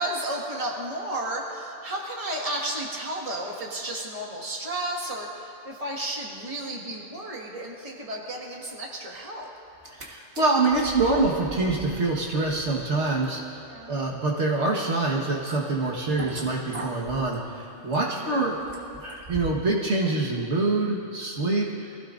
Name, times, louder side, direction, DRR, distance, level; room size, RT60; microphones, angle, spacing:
voice 1, 0.0-9.5 13.6-14.0 18.2-18.4, right 1 dB, 30° right, -2 dB, 1.8 m, -33 dB
sound 1, 9.7-10.1 10.3-19.7 20.1-20.2, right 3 dB, 50° right, 1.7 m, -42 dB
voice 2, 9.9-13.4 13.9-18.5 19.0-21.9, right 3 dB, 65° right, -3 dB, 1.8 m, -25 dB
24.5 x 16.0 x 2.6 m, 2.8 s
omnidirectional pair, 1.3 m